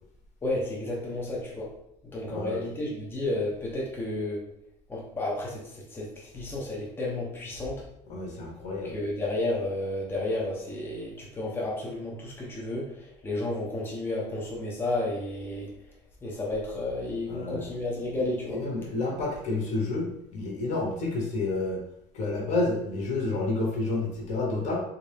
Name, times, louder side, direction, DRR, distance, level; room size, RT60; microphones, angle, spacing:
voice 1, 0.4-1.7 2.0-4.4 4.9-7.9 8.8-15.7 16.2-18.6, left 2 dB, 15° left, -4 dB, 0.8 m, -32 dB
voice 2, 2.3-2.6 8.1-8.9 17.3-17.7 18.2-21.8 22.1-24.8, left 2 dB, 55° left, -1 dB, 1.0 m, -30 dB
3.2 x 2.6 x 3.3 m, 0.78 s
cardioid pair, 125°, 14 cm